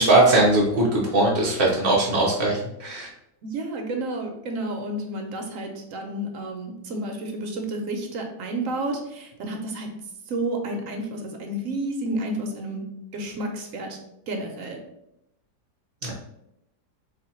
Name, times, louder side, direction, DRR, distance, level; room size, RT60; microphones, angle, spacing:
voice 1, 0.0-3.1 16.0-16.1, right 2 dB, 45° right, -5 dB, 0.6 m, -20 dB
voice 2, 3.4-10.0 10.3-12.9 13.1-14.0 14.3-14.8, right 1 dB, 65° right, 2 dB, 0.9 m, -31 dB
4.0 x 2.6 x 4.3 m, 0.82 s
omnidirectional pair, 1.8 m